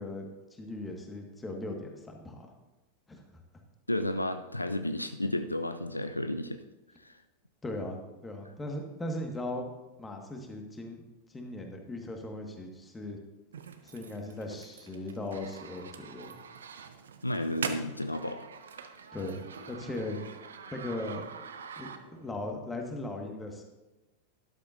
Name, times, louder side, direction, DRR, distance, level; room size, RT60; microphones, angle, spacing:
voice 1, 0.0-2.5 3.1-3.2 7.6-9.7 10.0-11.0 11.3-13.2 13.8-16.4 19.1-20.2 20.7-21.2 21.8-23.6, left 1 dB, 10° left, 2 dB, 1.7 m, -38 dB
voice 2, 3.9-6.6 7.0-7.2 17.2-18.5, left 1 dB, 85° left, 9 dB, 0.4 m, -32 dB
sound 1, 13.5-22.4, right 6 dB, 65° right, 0.8 m, -44 dB
12.5 x 11.5 x 2.7 m, 1.1 s
figure-of-eight pair, 90°, 0 cm